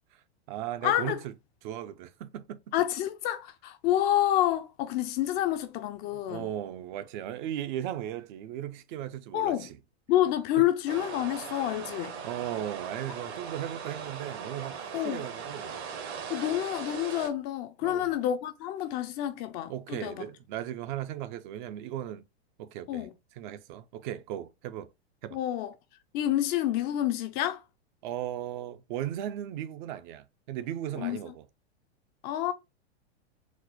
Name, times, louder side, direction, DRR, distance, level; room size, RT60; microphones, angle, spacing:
voice 1, 0.1-1.3 1.6-2.6 6.1-9.8 10.6-10.7 12.2-15.8 17.8-18.1 19.7-22.2 22.6-23.1 23.4-24.9 25.2-25.4 28.0-31.4, right 11 dB, 50° right, 0.4 m, -37 dB
voice 2, 0.8-1.2 2.7-6.5 9.3-9.7 10.1-12.2 14.9-15.3 16.3-20.2 22.9-23.1 25.3-25.7 26.1-27.6 31.0-31.2 32.2-32.5, left 12 dB, 30° left, 0.3 m, -28 dB
sound 1, 10.9-17.3, right 6 dB, 70° right, 1.1 m, -39 dB
4.1 x 2.0 x 2.8 m
hypercardioid pair, 115°, 33 cm